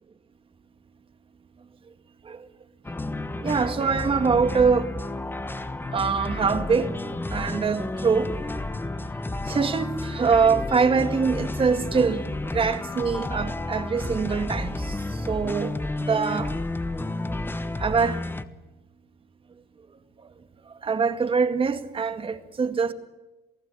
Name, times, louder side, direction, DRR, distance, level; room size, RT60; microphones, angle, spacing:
sound 1, 2.8-18.4, left 2 dB, 10° left, 1.2 m, -31 dB
voice 1, 3.4-4.9 5.9-6.9 7.3-8.3 9.5-12.3 12.5-14.9 15.3-15.7 16.0-16.5 17.8-18.2 20.8-22.9, right 5 dB, 30° right, 2.0 m, -23 dB
28.0 x 17.5 x 8.6 m
cardioid pair, 110°, 17 cm